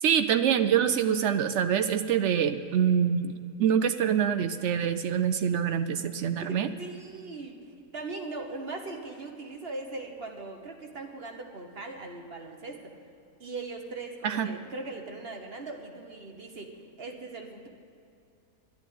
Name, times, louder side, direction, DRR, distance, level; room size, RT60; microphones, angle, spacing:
voice 1, 0.0-3.3 3.6-6.7 14.2-14.5, right 8 dB, 70° right, 10 dB, 0.6 m, -25 dB
voice 2, 6.4-7.6 7.9-12.9 13.4-17.7, right 3 dB, 40° right, 3 dB, 1.3 m, -40 dB
11.5 x 10.5 x 9.2 m, 2.6 s
omnidirectional pair, 1.7 m